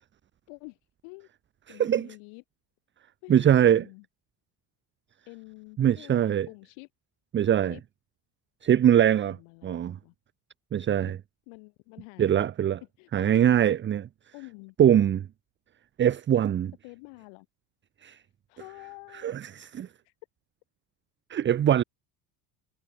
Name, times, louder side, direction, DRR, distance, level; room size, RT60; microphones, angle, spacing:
voice 1, 0.5-1.3 1.7-2.4 3.2-4.0 5.3-6.9 7.7-7.8 9.2-10.1 11.5-12.5 13.0-13.6 14.3-14.7 16.8-17.5 18.5-19.4 20.0-20.1, left 35 dB, 90° left, 5.1 m, -48 dB
voice 2, 1.7-2.1 3.3-3.8 5.8-6.5 7.3-7.7 8.6-9.4 9.6-10.0 10.7-11.2 12.2-12.8 13.1-14.1 14.8-15.3 16.0-16.7 18.0-18.2 19.2-19.9 21.3-21.8, right 10 dB, 25° right, 0.5 m, -22 dB
cardioid pair, 110°, 46 cm